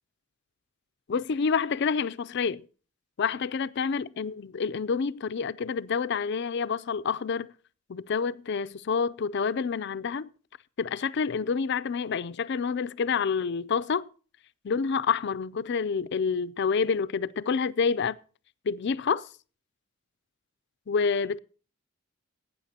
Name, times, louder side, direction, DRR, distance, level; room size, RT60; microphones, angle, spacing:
voice 1, 1.1-2.7 3.2-7.5 7.9-10.3 10.8-14.1 14.6-18.2 18.7-19.3 20.9-21.4, left 5 dB, 55° left, 0.4 m, -28 dB
18.0 x 9.2 x 2.8 m
head